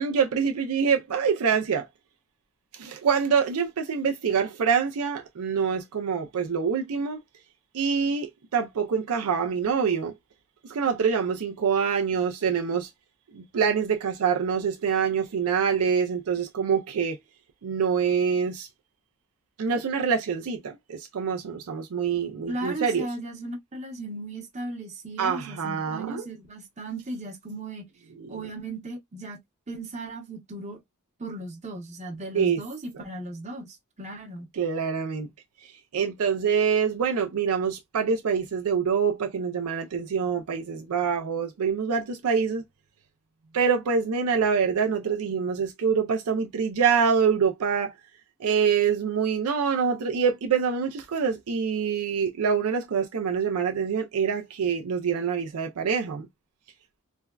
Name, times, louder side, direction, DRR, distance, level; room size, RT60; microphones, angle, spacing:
voice 1, 0.0-1.9 2.7-7.2 7.7-10.1 10.6-12.9 13.3-17.2 17.6-18.7 19.6-23.1 25.2-26.3 28.2-28.4 32.3-32.6 32.9-33.0 34.5-35.3 35.6-42.6 43.5-48.0 48.4-56.3, right 6 dB, 70° right, 0.4 m, -25 dB
voice 2, 22.5-27.8 28.3-29.4 29.7-30.8 31.2-34.5, right 2 dB, 30° right, 0.9 m, -36 dB
3.4 x 2.2 x 2.2 m
head